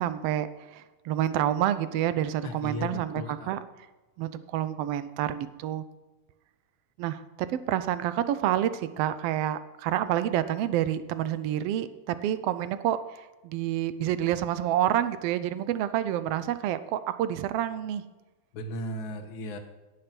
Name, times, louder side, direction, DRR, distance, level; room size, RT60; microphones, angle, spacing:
voice 1, 0.0-3.6 4.2-5.8 7.0-18.0, right 11 dB, 80° right, 13 dB, 1.4 m, -28 dB
voice 2, 2.4-3.5 18.5-19.6, left 1 dB, 50° left, 4 dB, 1.7 m, -36 dB
17.5 x 6.6 x 6.0 m, 1.2 s
omnidirectional pair, 3.4 m